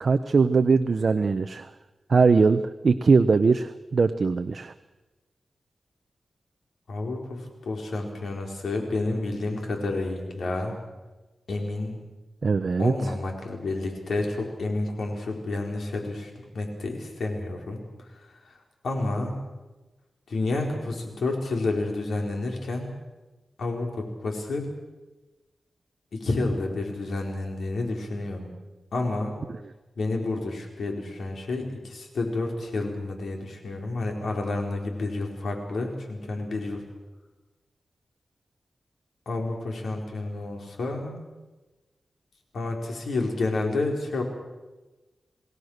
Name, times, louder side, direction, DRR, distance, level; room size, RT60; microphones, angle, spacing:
voice 1, 0.0-1.7 2.1-4.7 12.4-13.1 29.5-29.6, right 4 dB, 55° right, 9 dB, 0.8 m, -21 dB
voice 2, 6.9-10.8 11.5-12.0 12.8-17.8 18.8-19.3 20.3-22.9 23.6-24.7 26.1-28.5 28.9-29.4 30.0-36.8 39.3-41.2 42.5-44.2, left 2 dB, 90° left, 1 dB, 4.8 m, -30 dB
28.0 x 19.0 x 6.6 m, 1.1 s
wide cardioid pair, 110°, 0 cm